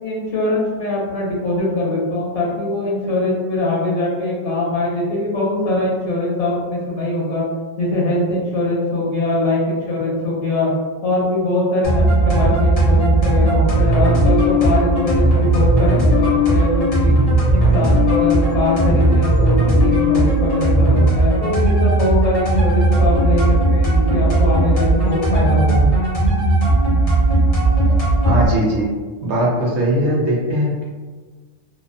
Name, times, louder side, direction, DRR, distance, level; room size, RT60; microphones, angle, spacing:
voice 1, 0.0-7.4 7.8-10.7 11.0-17.1 17.5-25.9, left 2 dB, 65° left, -5 dB, 1.1 m, -22 dB
sound 1, 11.8-28.5, right 1 dB, 40° left, 0.6 m, -16 dB
voice 2, 28.2-28.9 29.2-30.8, right 1 dB, 65° right, -4 dB, 0.9 m, -19 dB
2.6 x 2.0 x 2.5 m, 1.4 s
omnidirectional pair, 1.3 m